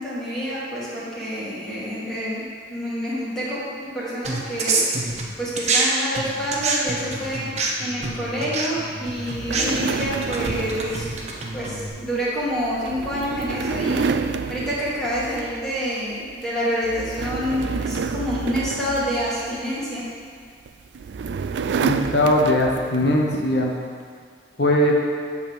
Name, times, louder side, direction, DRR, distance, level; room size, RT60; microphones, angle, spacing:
voice 1, 0.0-7.5 7.8-11.2 11.5-20.0, equal, 5° left, -9 dB, 2.1 m, -28 dB
sound 1, 4.2-5.9 6.1-11.9, right 3 dB, 40° right, 0.9 m, -26 dB
sound 2, 9.2-15.8 16.1-16.4 16.8-19.8 20.7-23.1, right 5 dB, 75° right, 0.3 m, -29 dB
voice 2, 21.8-23.7 24.6-24.9, left 1 dB, 70° left, -1 dB, 1.0 m, -20 dB
8.1 x 4.1 x 7.0 m, 2.1 s
head